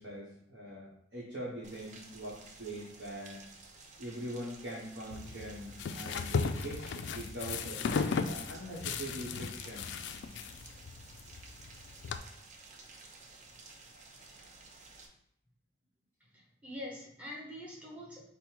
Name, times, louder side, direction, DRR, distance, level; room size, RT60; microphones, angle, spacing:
voice 1, 0.0-3.4 4.0-7.8 8.2-9.9, right 1 dB, 65° right, -6 dB, 1.1 m, -43 dB
Rain, 1.6-15.1, right 3 dB, 40° right, 0.5 m, -54 dB
sound 1, 5.1-12.2, left 5 dB, 70° left, 0.3 m, -36 dB
voice 2, 16.2-18.3, left 1 dB, 10° right, -4 dB, 0.9 m, -45 dB
5.3 x 2.1 x 4.5 m, 0.71 s
head